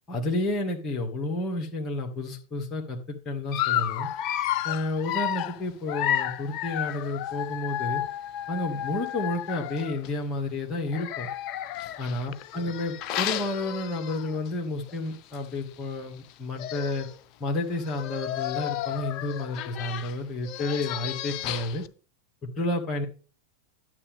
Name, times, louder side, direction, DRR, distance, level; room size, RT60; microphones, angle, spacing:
voice 1, 0.1-4.1 4.6-8.0 8.5-11.3 12.0-17.1 17.4-21.8 22.4-23.1, left 2 dB, 20° left, 1 dB, 1.9 m, -31 dB
Dog, 3.5-10.1 10.9-14.5 14.9-15.1 15.3-15.4 16.3-16.4 16.6-17.1 17.8-21.9, left 12 dB, 40° left, 0.6 m, -32 dB
12.0 x 7.2 x 3.4 m, 0.37 s
figure-of-eight pair, 90°, 0 cm